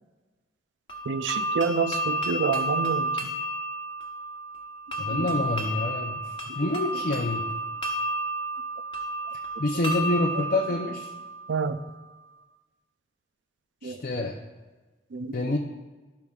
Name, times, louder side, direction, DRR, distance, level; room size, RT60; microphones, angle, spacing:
sound 1, 0.9-11.7, right 1 dB, 25° left, 1.0 m, -31 dB
voice 1, 1.1-3.1 10.4-10.5 11.5-11.8 13.8-14.0 15.1-15.4, right 5 dB, 75° right, 12 dB, 0.4 m, -28 dB
voice 2, 5.0-7.5 9.6-11.1 13.8-14.4 15.3-15.6, left 2 dB, 50° left, 0 dB, 0.6 m, -27 dB
17.0 x 5.7 x 2.4 m, 1.3 s
head